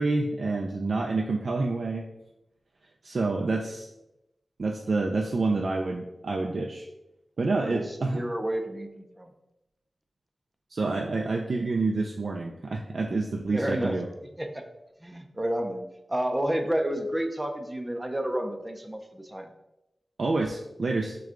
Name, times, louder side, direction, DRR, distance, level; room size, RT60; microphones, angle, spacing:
voice 1, 0.0-2.0 3.0-3.9 4.6-6.9 7.4-8.2 10.7-14.1 20.2-21.2, right 3 dB, 65° right, 1 dB, 0.4 m, -28 dB
voice 2, 7.6-9.3 13.5-14.0 14.4-14.6 15.0-19.5, right 1 dB, 15° right, 5 dB, 0.5 m, -30 dB
6.1 x 2.3 x 3.7 m, 0.90 s
wide cardioid pair, 110°, 0 cm